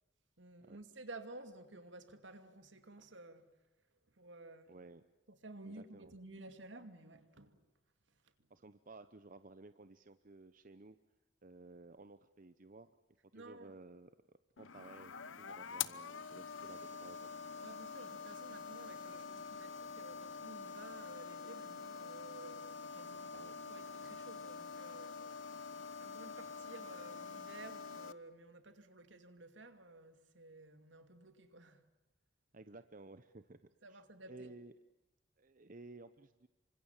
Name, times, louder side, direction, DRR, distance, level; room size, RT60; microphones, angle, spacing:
voice 1, 0.4-3.5 4.1-4.7 5.3-7.7 8.4-8.5 13.3-13.7 17.6-25.2 26.0-31.8 33.8-34.5, right 2 dB, 75° right, 2.6 m, -54 dB
voice 2, 4.7-5.0 5.7-6.1 8.5-11.0 11.4-12.9 13.3-14.1 14.6-17.3 23.3-23.5 32.5-33.6 33.9-34.0 34.3-34.7 35.4-36.5, right 3 dB, 45° right, 0.9 m, -55 dB
sound 1, 14.6-28.1, left 5 dB, 85° left, 1.0 m, -46 dB
28.5 x 25.0 x 7.3 m
head